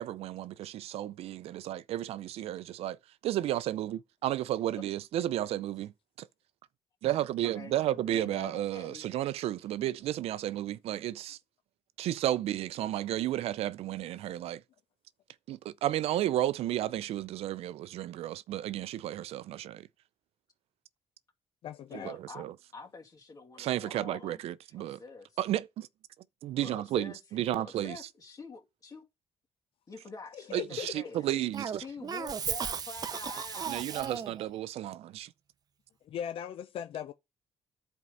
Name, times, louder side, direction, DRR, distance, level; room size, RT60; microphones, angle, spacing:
voice 1, 0.0-3.0 3.2-5.9 6.2-6.3 7.0-11.4 12.0-14.6 15.5-19.9 22.0-22.5 23.6-25.0 25.4-25.9 26.4-28.0 30.5-31.8 33.7-35.3, right 13 dB, 75° right, 0.5 m, -33 dB
voice 2, 7.4-9.1 21.9-22.5 22.7-24.4 24.8-25.4 26.6-27.2 27.5-29.1 29.9-31.2 31.8-33.7, left 4 dB, 35° left, 2.4 m, -46 dB
voice 3, 21.6-22.1 30.3-30.9 36.0-37.1, left 9 dB, 65° left, 0.5 m, -38 dB
Cough, 31.5-34.5, right 7 dB, 40° right, 0.7 m, -35 dB
11.0 x 4.6 x 5.3 m
cardioid pair, 120°, 10 cm